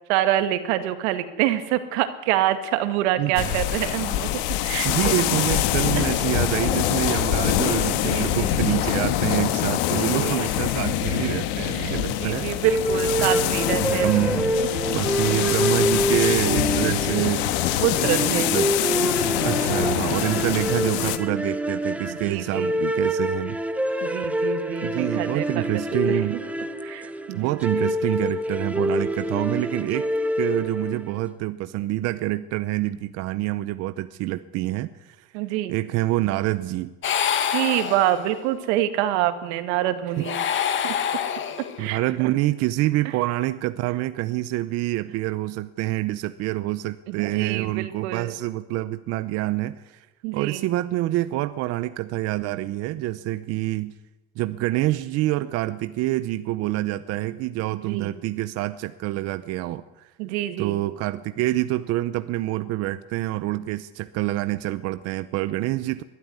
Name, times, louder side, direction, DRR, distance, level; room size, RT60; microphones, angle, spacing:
voice 1, 0.1-4.3 4.6-4.9 5.9-6.0 8.0-8.5 10.2-10.4 11.8-11.9 12.2-14.3 17.8-18.5 22.1-22.7 24.0-25.6 26.1-26.2 26.8-27.6 35.3-35.7 37.5-40.4 40.8-41.0 41.6-42.0 47.1-48.3 50.2-50.6 57.9-58.1 60.2-60.8, right 13 dB, 80° right, 9 dB, 2.2 m, -26 dB
sound 1, 3.4-21.2, left 12 dB, 70° left, 1.6 m, -24 dB
voice 2, 4.8-12.6 13.8-14.5 14.9-17.5 18.1-18.8 19.4-23.6 24.8-26.4 27.3-30.1 30.4-35.3 35.7-36.9 40.2-40.3 41.8-50.1 50.3-53.9 54.4-60.1 60.6-66.0, right 16 dB, 45° right, 13 dB, 0.7 m, -26 dB
sound 2, 12.6-31.1, equal, 5° right, 0.8 m, -27 dB
sound 3, 37.0-38.5 40.1-41.9, left 8 dB, 35° left, 1.7 m, -26 dB
21.5 x 13.0 x 9.6 m, 1.1 s
cardioid pair, 150°, 34 cm